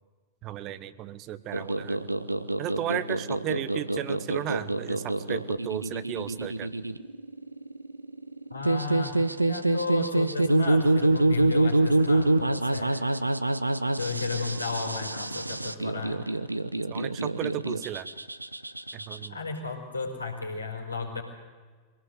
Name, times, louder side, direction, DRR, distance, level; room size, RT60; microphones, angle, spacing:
voice 1, 0.4-2.1 2.6-6.7 16.9-18.1 18.9-19.4, right 12 dB, 35° right, 14 dB, 1.1 m, -35 dB
sound 1, 1.5-19.3, right 2 dB, 85° right, 0.8 m, -26 dB
voice 2, 8.5-13.1 14.0-16.2 19.3-21.2, left 4 dB, 85° left, 0 dB, 4.8 m, -33 dB
24.0 x 17.5 x 8.0 m, 1.4 s
figure-of-eight pair, 90°, 0 cm